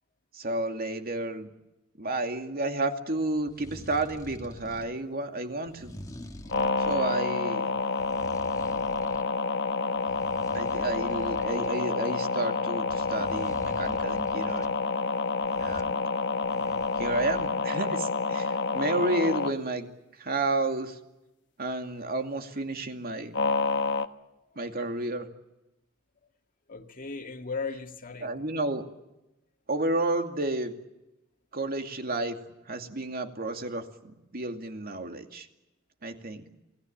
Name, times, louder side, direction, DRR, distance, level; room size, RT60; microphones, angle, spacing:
voice 1, 0.3-1.5 2.0-5.9 6.8-7.7 10.5-14.8 15.6-16.1 17.0-19.9 20.2-21.0 21.6-23.4 24.6-25.3 28.2-28.8 29.7-30.7 31.5-32.4 32.7-35.5 36.0-36.4, right 2 dB, 50° right, 2.4 m, -31 dB
sound 1, 3.4-5.0 5.7-7.1 7.8-9.3 9.7-11.8 12.9-14.7 15.4-15.9 16.4-17.5, equal, 15° left, 1.7 m, -46 dB
sound 2, 6.5-19.5 23.3-24.1, left 4 dB, 60° left, 1.2 m, -28 dB
voice 2, 16.5-16.9 26.7-28.5, left 4 dB, 45° left, 2.1 m, -38 dB
28.0 x 19.0 x 8.8 m
head